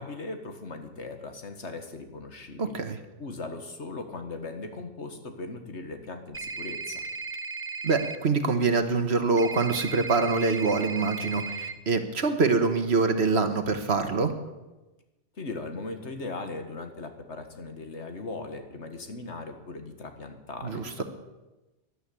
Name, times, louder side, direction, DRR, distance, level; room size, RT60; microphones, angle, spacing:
voice 1, 0.0-2.8 3.2-7.0 15.4-21.0, left 3 dB, 70° left, 6 dB, 2.0 m, -38 dB
voice 2, 2.6-3.0 7.8-14.3 20.6-21.0, right 4 dB, 65° right, 8 dB, 1.6 m, -25 dB
sound 1, 6.3-8.2 9.4-11.7, right 4 dB, 15° right, 0.6 m, -36 dB
13.0 x 11.5 x 8.7 m, 1.1 s
omnidirectional pair, 1.2 m